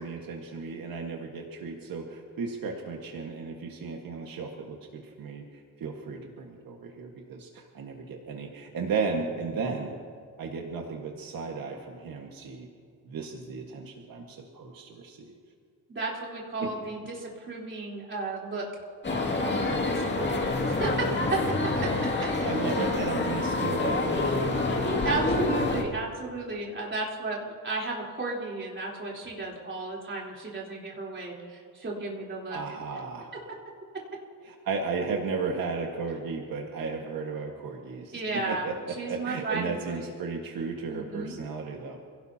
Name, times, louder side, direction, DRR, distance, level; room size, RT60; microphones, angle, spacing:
voice 1, 0.0-5.4 5.8-10.0 10.4-12.7 13.1-15.3 16.6-16.7 21.6-22.1 22.4-24.9 32.5-33.3 34.4-42.0, right 4 dB, 80° right, 1 dB, 1.8 m, -34 dB
voice 2, 15.9-18.7 19.4-21.1 25.0-32.6 38.1-38.7 39.0-40.1 40.9-41.3, right 3 dB, 35° right, -4 dB, 3.8 m, -34 dB
sound 1, 19.0-25.8, left 2 dB, 30° left, 2.4 m, -27 dB
28.5 x 17.5 x 2.9 m, 2.2 s
wide cardioid pair, 135°, 34 cm